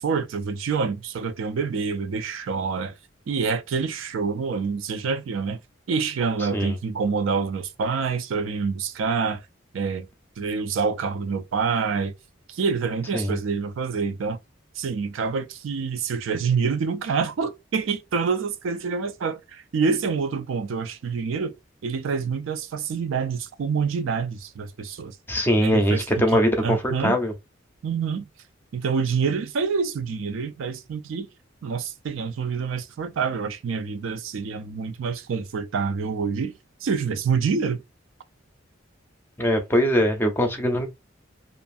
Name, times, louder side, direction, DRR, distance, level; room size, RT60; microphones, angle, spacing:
voice 1, 0.0-2.9 3.3-5.6 5.9-9.4 9.7-10.1 10.4-12.1 12.5-14.4 14.8-21.5 21.8-25.2 25.6-27.2 27.8-28.3 28.7-31.3 31.6-36.5 36.8-37.8, right 5 dB, 80° right, 0.4 m, -27 dB
voice 2, 25.3-27.3 39.4-40.9, equal, 10° left, 0.5 m, -22 dB
2.5 x 2.4 x 2.5 m
head